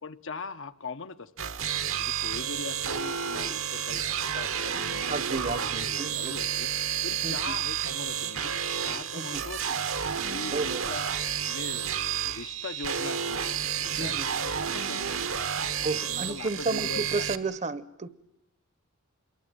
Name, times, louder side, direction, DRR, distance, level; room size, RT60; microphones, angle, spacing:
voice 1, 0.0-1.5 1.9-5.6 5.8-6.7 7.0-8.5 8.8-9.7 10.3-11.1 11.5-13.5 13.8-15.2 15.8-17.3, left 4 dB, 65° left, 9 dB, 0.9 m, -41 dB
sound 1, 1.4-17.4, right 8 dB, 65° right, 1.3 m, -31 dB
voice 2, 5.0-6.3 7.2-7.5 9.1-9.5 10.5-10.8 14.0-14.3 15.8-18.1, right 3 dB, 35° right, 16 dB, 1.0 m, -32 dB
26.5 x 23.0 x 9.0 m, 0.78 s
head